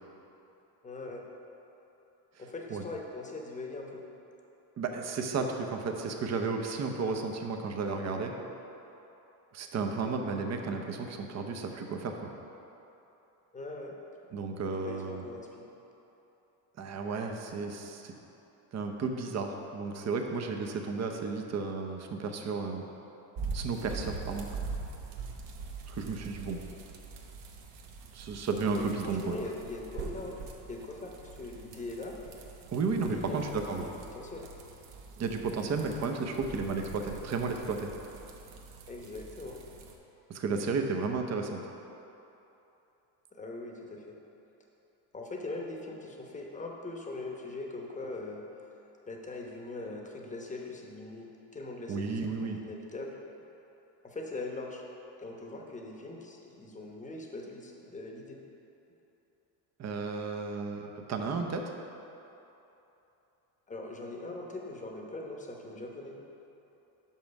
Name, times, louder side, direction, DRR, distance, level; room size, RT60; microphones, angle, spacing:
voice 1, 0.8-1.2 2.4-4.1 13.5-14.0 14.8-15.6 28.7-30.4 30.6-32.2 33.1-33.5 33.7-34.5 38.9-39.6 43.4-44.2 45.1-48.4 49.1-53.2 54.0-54.8 55.2-58.4 63.7-66.2, left 2 dB, 15° left, 0 dB, 1.0 m, -41 dB
voice 2, 4.8-8.3 9.5-12.3 14.3-15.2 16.8-18.1 18.7-22.9 23.5-24.5 25.9-26.6 28.1-29.3 32.7-33.9 35.2-37.9 40.3-41.6 51.9-52.6 59.8-61.7, right 4 dB, 35° right, 3 dB, 0.7 m, -33 dB
sound 1, 23.4-39.9, right 4 dB, 60° right, 1.0 m, -43 dB
5.9 x 5.6 x 5.3 m, 3.0 s
supercardioid pair, 95°, 48 cm